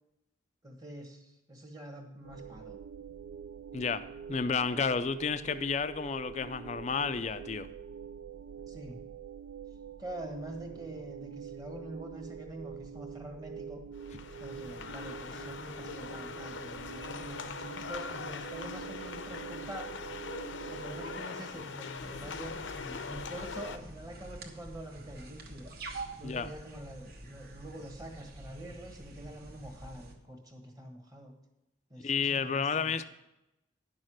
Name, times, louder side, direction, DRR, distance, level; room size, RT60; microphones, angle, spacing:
voice 1, 0.6-2.8 8.7-9.1 10.0-13.8 14.4-19.9 20.7-25.7 26.2-31.4 31.9-33.0, right 1 dB, 20° right, 1.2 m, -45 dB
sound 1, 2.2-21.3, right 7 dB, 70° right, 0.3 m, -45 dB
voice 2, 3.7-4.0 4.3-7.7 26.2-26.5 32.0-33.1, left 5 dB, 35° left, 0.4 m, -31 dB
sound 2, 14.0-23.8, left 5 dB, 80° left, 0.7 m, -42 dB
sound 3, 22.0-30.1, right 2 dB, 50° right, 1.2 m, -47 dB
10.5 x 6.4 x 6.2 m
head